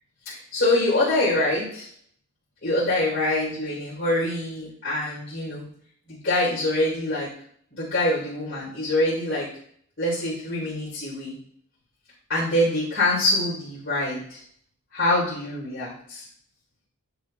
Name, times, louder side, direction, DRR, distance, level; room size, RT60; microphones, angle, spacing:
voice 1, 0.2-1.9 2.6-5.7 6.1-7.3 7.7-9.5 10.0-11.3 12.3-14.4 14.9-16.2, left 1 dB, 55° left, -8 dB, 3.3 m, -25 dB
10.5 x 6.3 x 2.3 m, 0.62 s
head